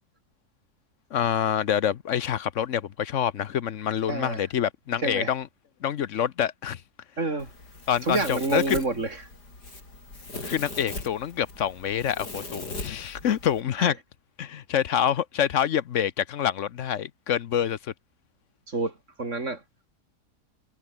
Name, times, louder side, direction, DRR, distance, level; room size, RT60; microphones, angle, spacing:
voice 1, 1.1-5.5 5.8-6.8 7.9-8.8 10.4-14.0 14.4-17.9, left 9 dB, 55° left, 1.0 m, -26 dB
voice 2, 4.1-4.4 5.0-5.3 7.2-7.5 8.0-9.2 13.8-13.9 18.7-19.6, right 3 dB, 50° right, 4.1 m, -28 dB
Domestic sounds home sounds, 7.4-13.6, left 2 dB, 85° left, 6.5 m, -40 dB
omnidirectional pair, 1.7 m